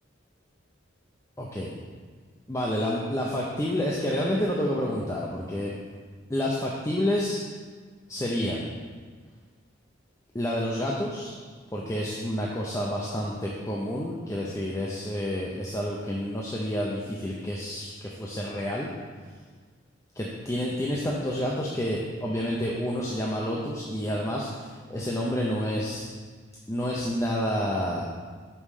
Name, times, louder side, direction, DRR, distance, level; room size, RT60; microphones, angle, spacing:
voice 1, 1.4-1.7 2.5-5.8 6.3-7.4 8.1-8.8 10.3-11.3 11.7-18.9 20.1-26.1 26.7-28.1, equal, 15° left, -3 dB, 0.5 m, -29 dB
6.4 x 5.4 x 4.9 m, 1.5 s
head